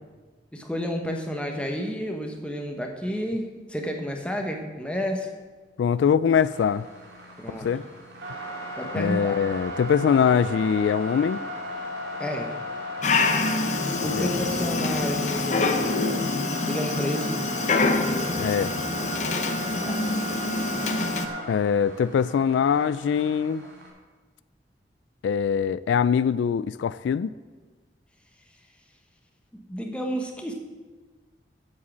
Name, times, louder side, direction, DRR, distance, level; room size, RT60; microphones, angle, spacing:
voice 1, 0.5-5.3 7.4-7.7 8.8-9.4 12.2-12.5 14.0-16.1 16.6-17.4 19.8-20.1 29.7-30.5, equal, 5° left, 2 dB, 1.1 m, -30 dB
voice 2, 5.8-6.9 7.5-7.8 9.0-11.4 14.0-14.3 18.4-18.7 21.5-23.6 25.2-27.3, left 7 dB, 90° left, 17 dB, 0.3 m, -23 dB
sound 1, 6.3-23.9, equal, 80° right, 2.5 m, -35 dB
Dog, 13.0-21.3, left 3 dB, 40° left, 0.8 m, -26 dB
8.3 x 7.5 x 7.3 m, 1.3 s
head